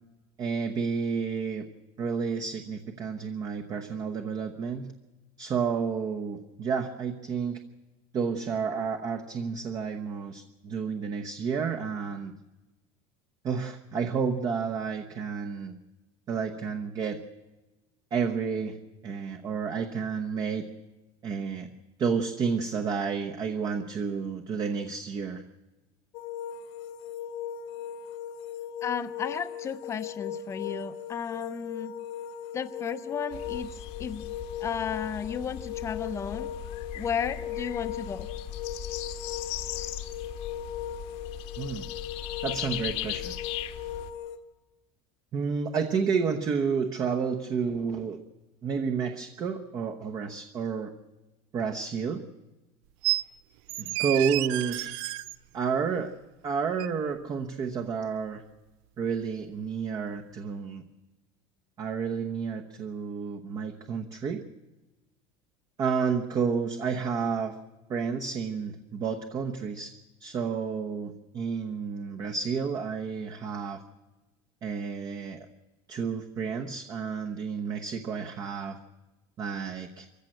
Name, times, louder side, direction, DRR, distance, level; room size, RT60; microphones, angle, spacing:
voice 1, 0.4-1.7 2.0-4.9 5.4-7.6 8.1-12.3 13.4-15.8 16.3-17.2 18.1-18.8 19.0-20.7 21.2-21.7 22.0-25.4 41.6-41.9 42.4-43.3 45.3-48.2 48.6-50.9 51.5-52.2 53.8-54.9 55.5-56.1 56.4-58.4 59.0-60.8 61.8-64.4 65.8-67.6 67.9-69.9 70.2-73.8 74.6-75.5 75.9-78.8 79.4-80.1, right 6 dB, 30° right, 4 dB, 1.0 m, -30 dB
sound 1, 26.1-44.4, left 8 dB, 75° left, 1.8 m, -38 dB
voice 2, 28.8-31.9 32.5-34.2 34.6-36.5 36.9-38.3, left 7 dB, 25° left, 10 dB, 0.8 m, -34 dB
sound 2, 33.3-44.1, left 13 dB, 55° left, 1.3 m, -38 dB
sound 3, 53.0-53.2 53.7-55.4 56.8-56.9, right 19 dB, 70° right, 0.6 m, -30 dB
24.5 x 15.0 x 7.8 m, 1.1 s
cardioid pair, 155°, 13 cm